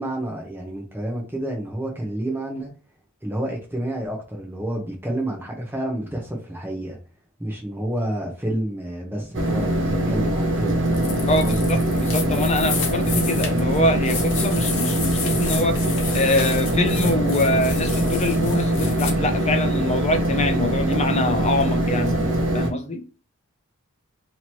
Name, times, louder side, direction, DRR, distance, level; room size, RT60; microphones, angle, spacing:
voice 1, 0.0-2.7 3.2-7.0 7.4-10.9 11.2-11.7, right 1 dB, 10° right, 0.7 m, -29 dB
sound 1, 9.3-22.7, right 1 dB, 55° right, 0.7 m, -22 dB
sound 2, 10.9-19.1, left 6 dB, 55° left, 0.9 m, -32 dB
voice 2, 11.3-15.8 16.1-23.0, left 1 dB, 30° left, 0.6 m, -24 dB
3.0 x 2.8 x 4.4 m
head